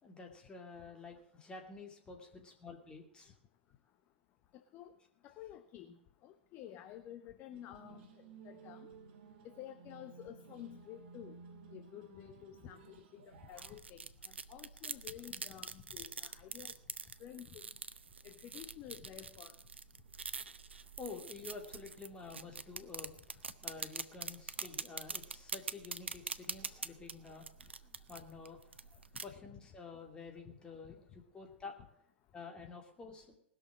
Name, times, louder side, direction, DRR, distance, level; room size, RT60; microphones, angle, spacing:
voice 1, 0.0-3.3 13.5-13.7 21.0-31.8 32.3-33.3, left 4 dB, 15° left, 2 dB, 2.6 m, -50 dB
voice 2, 5.2-6.0 6.2-8.0 8.4-8.9 9.4-11.4 11.7-16.7 17.2-17.6 18.2-19.5, left 11 dB, 30° left, 7 dB, 0.9 m, -51 dB
sound 1, 7.5-13.8, right 5 dB, 45° right, 1.9 m, -56 dB
sound 2, 13.3-29.2, right 5 dB, 75° right, 0.6 m, -45 dB
19.0 x 6.4 x 7.4 m, 0.71 s
figure-of-eight pair, 100°, 6 cm